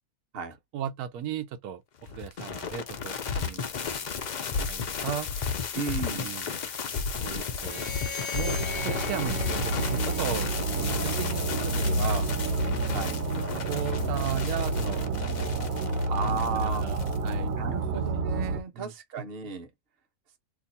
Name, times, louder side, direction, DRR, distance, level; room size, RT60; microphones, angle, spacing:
voice 1, 0.7-4.1 4.4-5.3 6.0-6.5 7.2-10.5 10.8-12.5 13.5-15.1 16.2-17.5 17.9-18.0 18.7-18.9, right 9 dB, 90° right, 1.2 m, -36 dB
sound 1, 2.1-17.3, left 6 dB, 80° left, 0.4 m, -34 dB
voice 2, 5.7-6.3 12.9-13.2 16.1-16.8 17.6-19.7, right 5 dB, 45° right, 1.0 m, -34 dB
sound 2, 7.5-10.8, left 5 dB, 30° left, 0.5 m, -40 dB
sound 3, 8.4-18.6, right 2 dB, 70° right, 1.1 m, -29 dB
2.9 x 2.4 x 4.0 m
omnidirectional pair, 1.6 m